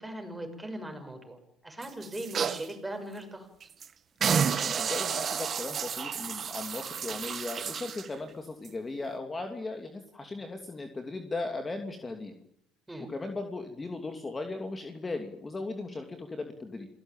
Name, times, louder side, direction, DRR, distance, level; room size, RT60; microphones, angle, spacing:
voice 1, 0.0-1.4 1.6-3.5 12.9-13.1, right 1 dB, 10° right, 5 dB, 6.8 m, -39 dB
sound 1, 1.8-2.7 3.2-3.3 3.6-3.9 4.2-8.1 8.6-8.7, right 7 dB, 40° right, 1.6 m, -31 dB
voice 2, 4.2-12.3 13.0-16.9, left 3 dB, 20° left, 5 dB, 2.7 m, -37 dB
27.5 x 18.0 x 9.1 m, 0.74 s
supercardioid pair, 100°, 0 cm